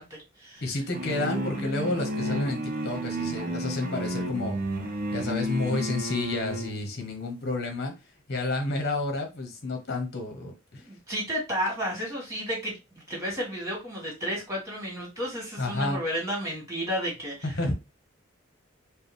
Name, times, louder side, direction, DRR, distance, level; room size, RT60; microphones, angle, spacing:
voice 1, 0.0-0.6 10.9-17.3, equal, 15° right, -3 dB, 2.1 m, -32 dB
voice 2, 0.6-4.6 4.9-11.0 15.6-16.0 17.4-17.7, left 2 dB, 50° left, 4 dB, 1.1 m, -30 dB
sound 1, 0.9-6.8, equal, 45° right, 0.7 m, -31 dB
4.7 x 2.3 x 3.4 m, 0.26 s
head